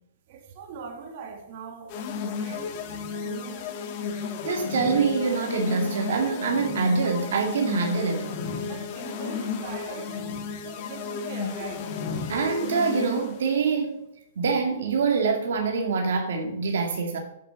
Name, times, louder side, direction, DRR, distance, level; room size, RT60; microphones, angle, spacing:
voice 1, 0.3-2.0 2.3-3.7 8.7-11.9, right 5 dB, 45° right, 2.8 m, -41 dB
sound 1, 1.9-13.5, left 5 dB, 45° left, 2.0 m, -33 dB
voice 2, 4.4-8.3 12.3-14.0 14.4-17.2, right 4 dB, 75° right, 2.4 m, -25 dB
9.1 x 8.7 x 7.4 m
hypercardioid pair, 140°, 0 cm